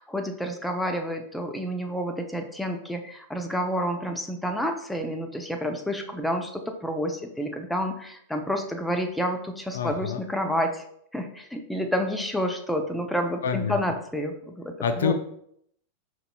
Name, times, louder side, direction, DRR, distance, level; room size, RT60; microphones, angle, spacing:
voice 1, 0.0-10.8 11.1-15.1, equal, 5° left, 5 dB, 0.5 m, -29 dB
voice 2, 9.7-10.2 13.4-13.8 14.8-15.1, left 6 dB, 75° left, 8 dB, 0.3 m, -26 dB
4.9 x 2.9 x 2.2 m, 0.70 s
hypercardioid pair, 100°, 0 cm